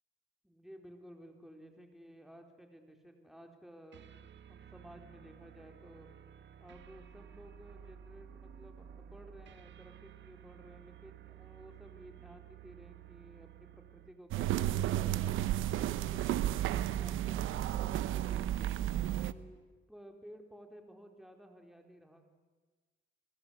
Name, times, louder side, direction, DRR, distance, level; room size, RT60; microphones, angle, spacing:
voice 1, 0.4-4.2 4.5-6.1 6.6-18.7 19.2-19.6 19.9-22.3, equal, ahead, 3 dB, 4.3 m, -55 dB
sound 1, 3.9-14.2, right 9 dB, 65° right, 1.5 m, -54 dB
sound 2, 14.3-19.3, right 12 dB, 85° right, 0.9 m, -32 dB
29.0 x 21.5 x 8.2 m, 1.3 s
cardioid pair, 90°, 20 cm